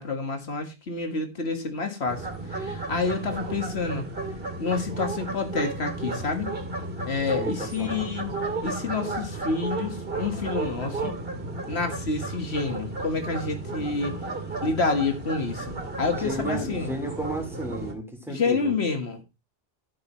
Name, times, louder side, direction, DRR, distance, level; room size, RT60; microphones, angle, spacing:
voice 1, 0.0-4.0 4.6-6.5 7.1-8.3 8.6-11.1 11.7-14.2 14.6-15.7 16.0-16.9 18.3-19.2, left 4 dB, 80° left, 1.9 m, -28 dB
sound 1, 2.1-17.9, right 2 dB, 60° right, 2.6 m, -33 dB
voice 2, 7.4-8.1 16.2-18.7, right 1 dB, ahead, 3.8 m, -33 dB
14.0 x 7.5 x 3.0 m
omnidirectional pair, 1.1 m